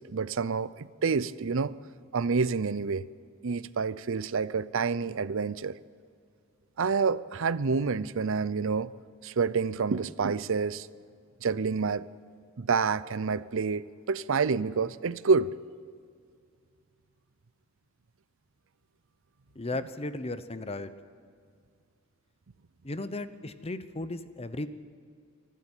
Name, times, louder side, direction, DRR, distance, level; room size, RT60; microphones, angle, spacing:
voice 1, 0.0-1.8 2.1-3.1 3.4-5.8 6.8-8.9 9.2-10.9 11.4-12.1 12.6-15.5, right 5 dB, 65° right, 18 dB, 0.6 m, -28 dB
voice 2, 19.6-20.9 22.8-24.7, left 2 dB, 30° left, 12 dB, 0.9 m, -35 dB
24.5 x 12.5 x 9.0 m, 2.2 s
head